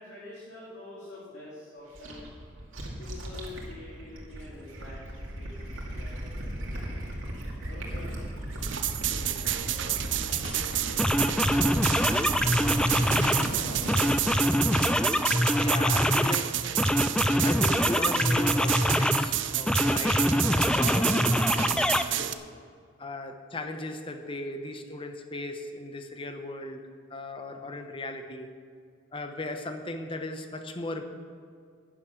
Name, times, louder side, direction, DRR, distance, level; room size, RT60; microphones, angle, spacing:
voice 1, 0.0-2.2 2.7-7.2 7.6-8.3 8.6-9.9 10.2-11.6 13.0-13.8, left 2 dB, 60° left, -8 dB, 2.9 m, -48 dB
Gurgling / Liquid, 1.9-14.5, right 1 dB, 85° right, 2.4 m, -36 dB
sound 1, 8.6-22.3, right 12 dB, 65° right, 0.5 m, -30 dB
sound 2, 10.4-10.6 11.0-13.5 13.9-16.4 16.8-19.3 19.7-22.0, left 1 dB, 5° left, 0.3 m, -24 dB
voice 2, 15.6-16.6 17.4-22.5 23.0-28.6 29.1-31.0, left 2 dB, 25° left, 7 dB, 0.9 m, -37 dB
11.0 x 10.0 x 5.9 m, 2.2 s
head